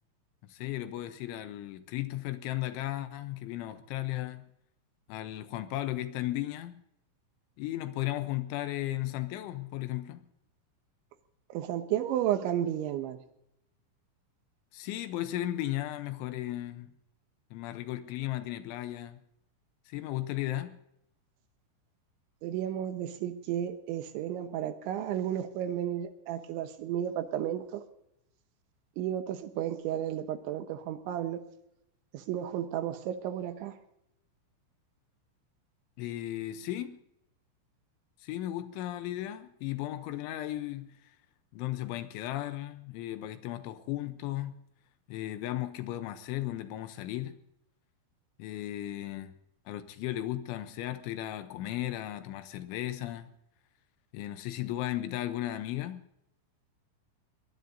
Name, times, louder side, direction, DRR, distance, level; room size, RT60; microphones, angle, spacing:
voice 1, 0.5-4.5 5.1-6.8 7.6-10.3 14.7-16.9 17.5-19.2 19.9-20.8 36.0-37.0 38.2-41.2 41.5-44.6 45.1-47.4 48.4-49.3 49.7-53.3 54.1-56.0, left 14 dB, 80° left, 3.0 m, -35 dB
voice 2, 11.5-13.2 22.4-27.8 29.0-31.4 32.3-33.7, right 11 dB, 75° right, 3.1 m, -33 dB
22.5 x 20.0 x 2.6 m
omnidirectional pair, 5.8 m